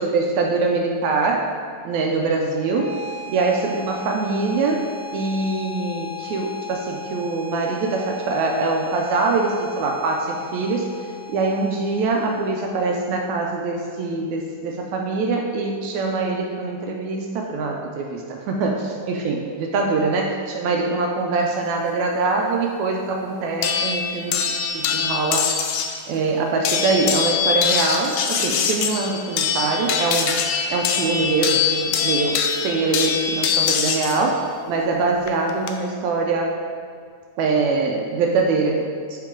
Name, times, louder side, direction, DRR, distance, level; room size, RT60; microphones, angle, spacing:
voice 1, 0.0-1.5 1.9-3.0 3.3-4.9 5.1-10.9 11.3-25.5 26.1-30.4 30.7-34.4 34.7-36.5 37.4-39.2, right 3 dB, 80° right, 1 dB, 1.8 m, -23 dB
sound 1, 2.5-13.5, left 5 dB, 50° left, 2.7 m, -37 dB
sound 2, 23.6-26.0 26.6-34.2 35.3-35.7, left 7 dB, 80° left, 1.8 m, -23 dB
11.0 x 4.0 x 3.7 m, 2.1 s
omnidirectional pair, 3.6 m